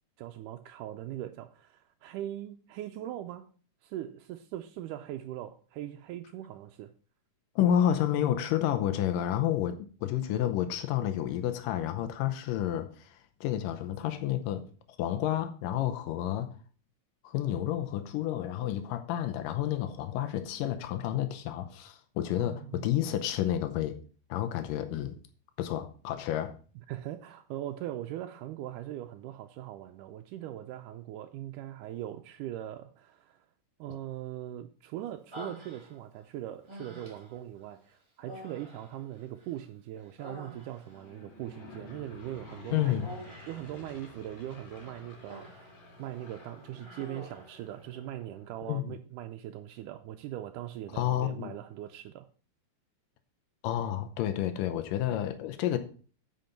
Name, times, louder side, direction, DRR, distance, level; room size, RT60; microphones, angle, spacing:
voice 1, 0.2-3.5 3.8-6.9 22.4-22.9 26.9-33.5 33.8-43.0 43.5-45.7 46.0-52.3, right 12 dB, 85° right, 2.1 m, -40 dB
voice 2, 7.6-13.2 13.4-14.6 15.0-16.5 17.2-24.0 24.3-25.2 25.6-26.6 42.7-43.1 48.7-48.9 50.9-51.5 53.6-55.8, left 11 dB, 90° left, 2.4 m, -30 dB
Human voice, 35.3-36.2 36.7-37.4 38.2-39.6 40.0-41.0 43.0-43.7 44.7-45.8 46.1-46.3 46.8-47.6, equal, 45° right, 0.3 m, -47 dB
Aircraft / Engine, 40.7-48.7, left 2 dB, 55° left, 5.1 m, -51 dB
9.2 x 5.2 x 5.7 m
omnidirectional pair, 3.8 m